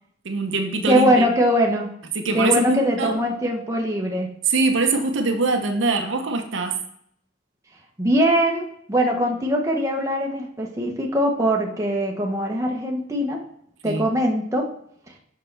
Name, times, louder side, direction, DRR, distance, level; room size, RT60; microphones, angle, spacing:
voice 1, 0.2-1.3 2.1-3.2 4.5-6.8 13.8-14.0, right 3 dB, 70° right, 5 dB, 0.8 m, -23 dB
voice 2, 0.9-1.9 2.3-4.3 8.0-13.4 13.8-14.7, equal, 15° right, 0 dB, 0.9 m, -21 dB
6.1 x 5.7 x 3.3 m, 0.70 s
head